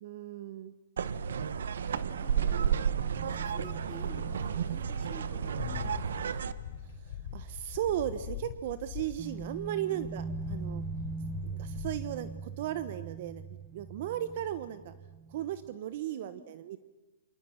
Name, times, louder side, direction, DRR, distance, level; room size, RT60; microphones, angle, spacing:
voice 1, 0.0-0.7 7.0-10.8 11.4-14.9 15.3-16.8, right 11 dB, 50° right, 13 dB, 1.1 m, -36 dB
sound 1, 1.0-6.5, right 7 dB, 75° right, 1.1 m, -32 dB
voice 2, 1.8-2.8 3.2-6.4 9.9-10.2 16.1-16.5, left 3 dB, 5° left, -1 dB, 4.8 m, -51 dB
sound 2, 2.2-7.6 7.9-8.0 9.2-15.7, right 4 dB, 20° right, 1.4 m, -43 dB
sound 3, 5.5-9.7 10.0-12.1, left 8 dB, 60° left, 4.2 m, -42 dB
29.0 x 26.5 x 5.9 m, 1.1 s
hypercardioid pair, 145°, 0 cm